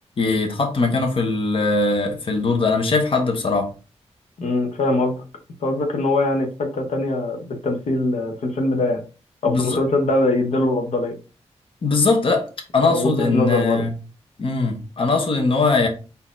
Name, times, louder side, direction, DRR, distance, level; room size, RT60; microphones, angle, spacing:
voice 1, 0.2-3.7 9.4-9.8 11.8-12.4 12.7-13.9 14.4-15.9, left 3 dB, 50° left, 0.9 m, -20 dB
voice 2, 4.4-5.2 5.6-9.0 9.4-11.2 12.8-13.9, left 2 dB, 85° left, 0.8 m, -22 dB
4.2 x 2.7 x 3.6 m
wide cardioid pair, 105°, 11 cm